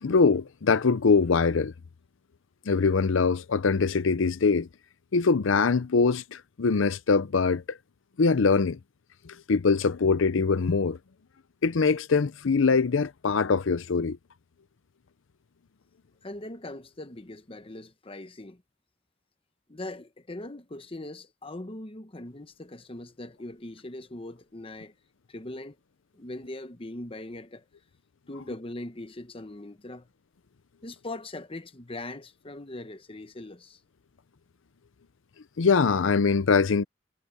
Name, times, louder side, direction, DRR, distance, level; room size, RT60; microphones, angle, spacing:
voice 1, 0.0-1.7 2.7-4.7 5.1-7.8 8.2-8.8 9.3-11.0 11.6-14.2 35.6-36.8, left 4 dB, 90° left, 0.6 m, -23 dB
voice 2, 16.2-18.6 19.7-24.9 25.3-25.8 26.1-27.6 28.3-30.1 30.8-33.8, left 2 dB, 30° left, 1.0 m, -40 dB
head